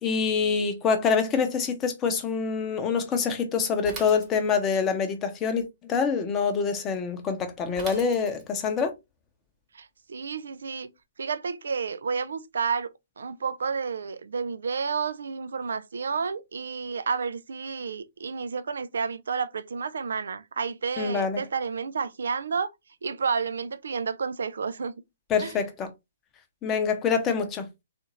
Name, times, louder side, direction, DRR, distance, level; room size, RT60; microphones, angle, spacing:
voice 1, 0.0-8.9 21.0-21.4 25.3-25.9 26.6-27.7, left 5 dB, 20° left, 0.8 m, -26 dB
Bicycle / Mechanisms, 3.8-4.8 7.8-8.7, right 3 dB, 20° right, 1.2 m, -41 dB
voice 2, 9.7-10.9 11.2-22.7 23.0-24.9 25.4-25.6, right 5 dB, 65° right, 0.4 m, -31 dB
3.6 x 2.5 x 2.9 m
figure-of-eight pair, 125°, 0 cm